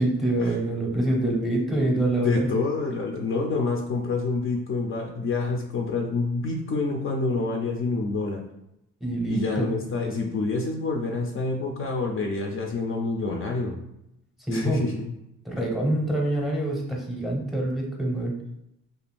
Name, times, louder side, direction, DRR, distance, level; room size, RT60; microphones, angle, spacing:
voice 1, 0.0-2.5 9.0-9.7 14.5-14.8 15.4-18.3, right 1 dB, ahead, -1 dB, 0.7 m, -25 dB
voice 2, 2.2-8.4 9.3-13.8 14.5-15.1, left 3 dB, 45° left, 1 dB, 0.5 m, -27 dB
2.5 x 2.2 x 3.4 m, 0.83 s
cardioid pair, 90°, 30 cm